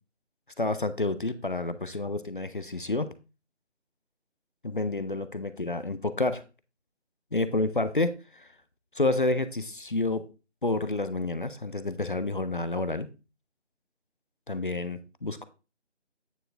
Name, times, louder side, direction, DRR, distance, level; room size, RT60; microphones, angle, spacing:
voice 1, 0.6-3.1 4.6-6.4 7.3-8.5 9.0-10.2 10.6-13.1 14.5-15.4, left 2 dB, 45° left, 12 dB, 0.5 m, -29 dB
9.2 x 4.3 x 3.8 m, 0.31 s
figure-of-eight pair, 170°, 36 cm